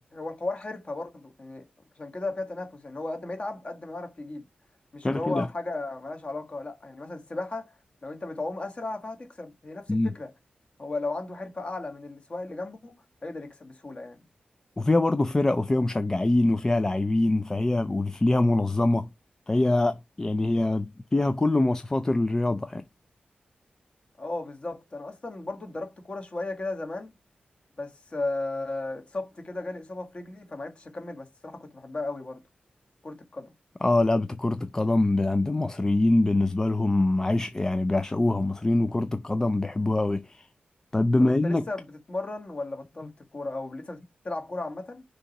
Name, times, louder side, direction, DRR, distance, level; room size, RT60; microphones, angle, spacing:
voice 1, 0.1-1.7 2.0-4.5 4.9-7.8 8.0-10.3 10.8-13.0 13.2-14.2 24.2-27.1 27.8-32.4 33.0-33.5 41.2-45.0, left 2 dB, 35° left, 1.5 m, -35 dB
voice 2, 5.0-5.5 9.9-10.1 14.8-19.1 19.5-22.8 33.8-40.4 40.9-41.6, left 2 dB, 20° left, 0.4 m, -24 dB
6.4 x 2.9 x 5.3 m
wide cardioid pair, 150°, 3 cm